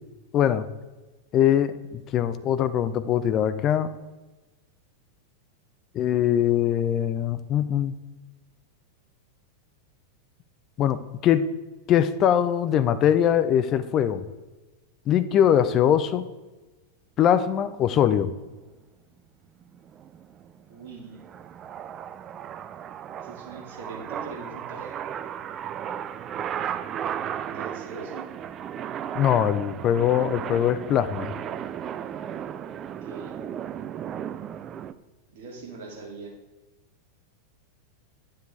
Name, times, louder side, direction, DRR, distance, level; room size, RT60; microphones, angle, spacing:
voice 1, 0.3-0.7 1.3-3.9 5.9-7.9 10.8-11.5 11.9-14.2 15.1-16.3 17.2-18.3 29.1-31.3, left 10 dB, 35° left, 12 dB, 0.5 m, -22 dB
sound 1, 19.6-34.9, right 9 dB, 30° right, 0.4 m, -35 dB
voice 2, 20.7-21.2 23.2-25.2 27.4-28.2 32.8-33.4 35.3-36.3, right 3 dB, 55° right, 0 dB, 2.2 m, -42 dB
10.0 x 7.5 x 3.3 m, 1.2 s
figure-of-eight pair, 90°, 0 cm